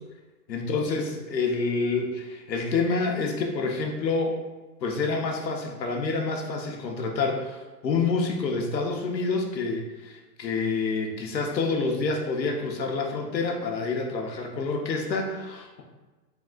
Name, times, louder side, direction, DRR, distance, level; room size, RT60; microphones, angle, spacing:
voice 1, 0.5-4.4 4.8-15.8, left 4 dB, 90° left, 1 dB, 1.1 m, -28 dB
4.0 x 3.8 x 2.4 m, 1.2 s
hypercardioid pair, 170°, 49 cm